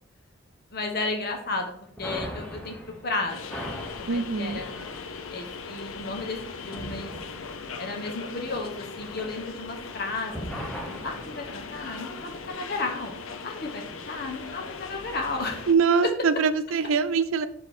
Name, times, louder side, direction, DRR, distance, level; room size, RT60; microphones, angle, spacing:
voice 1, 0.7-1.7 2.0-2.8 3.0-4.9 5.3-6.4 6.6-7.1 7.8-10.5 11.0-15.6 16.0-16.1, left 3 dB, 50° left, 3 dB, 0.9 m, -33 dB
sound 1, 2.0-10.0 10.3-12.6, equal, 5° left, 1.1 m, -41 dB
sound 2, 3.3-15.7, left 5 dB, 85° left, 0.7 m, -39 dB
voice 2, 4.1-4.6 15.7-17.5, right 5 dB, 85° right, 12 dB, 0.5 m, -23 dB
6.0 x 5.1 x 4.3 m, 0.68 s
head